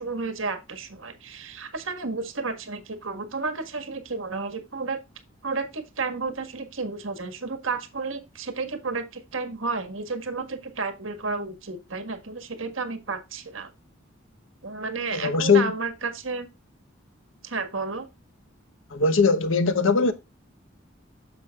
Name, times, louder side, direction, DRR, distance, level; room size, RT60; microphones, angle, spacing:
voice 1, 0.0-5.0 5.4-13.7 14.6-16.5 17.4-18.1, right 4 dB, 75° right, 1.7 m, -32 dB
voice 2, 15.1-15.7 18.9-20.1, left 4 dB, 70° left, 1.0 m, -20 dB
9.8 x 7.2 x 2.4 m
head